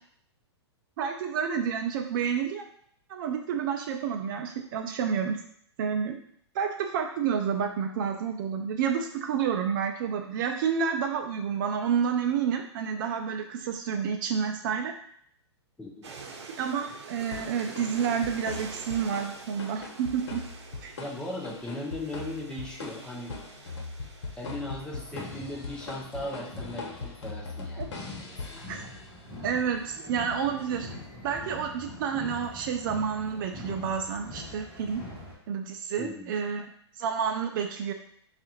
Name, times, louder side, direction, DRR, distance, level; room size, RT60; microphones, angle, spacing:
voice 1, 1.0-2.6 3.1-5.4 5.8-6.2 6.5-14.9 16.6-20.4 20.8-21.0 27.8-27.9 28.7-28.8 29.4-30.9 31.2-35.0 35.5-36.7 37.0-37.9, right 7 dB, 45° right, 5 dB, 0.4 m, -29 dB
voice 2, 15.8-16.1 21.0-23.4 24.4-27.8 28.2-28.6 36.0-36.3, left 1 dB, 5° left, -2 dB, 0.7 m, -38 dB
sound 1, 16.0-26.3, right 4 dB, 75° right, 0.8 m, -46 dB
sound 2, 17.3-29.3, left 4 dB, 80° left, 1.0 m, -41 dB
sound 3, 24.5-35.3, left 1 dB, 15° right, 1.4 m, -44 dB
3.6 x 2.5 x 4.3 m, 0.66 s
hypercardioid pair, 140°, 15 cm